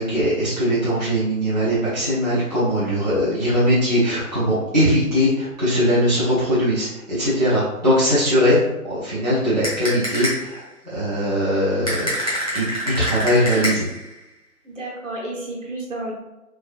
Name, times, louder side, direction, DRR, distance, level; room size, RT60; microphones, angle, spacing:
voice 1, 0.0-13.9, equal, 30° right, -12 dB, 0.6 m, -20 dB
sound 1, 9.6-10.6 11.9-14.1, equal, 25° left, 0.6 m, -26 dB
voice 2, 14.6-16.1, right 2 dB, 55° right, -3 dB, 1.0 m, -31 dB
3.2 x 2.4 x 2.4 m, 0.97 s
figure-of-eight pair, 150°, 45 cm